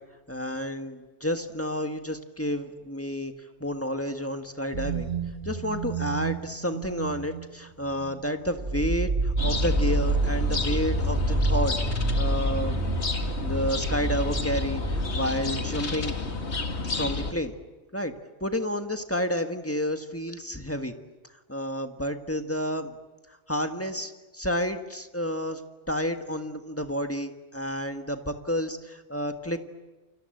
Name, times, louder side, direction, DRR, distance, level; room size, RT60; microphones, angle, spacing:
voice 1, 0.3-3.3 3.6-5.1 5.4-12.8 13.4-16.1 17.0-17.5 17.9-18.1 18.4-20.9 21.5-22.9 23.5-25.6 25.9-29.6, equal, 10° left, 6 dB, 1.5 m, -30 dB
sound 1, 4.7-7.4 7.8-8.2 8.5-15.0, right 2 dB, 30° right, 2.5 m, -28 dB
sound 2, 9.4-17.3, left 3 dB, 65° left, 2.2 m, -30 dB
29.0 x 25.5 x 7.8 m, 1.2 s
omnidirectional pair, 1.2 m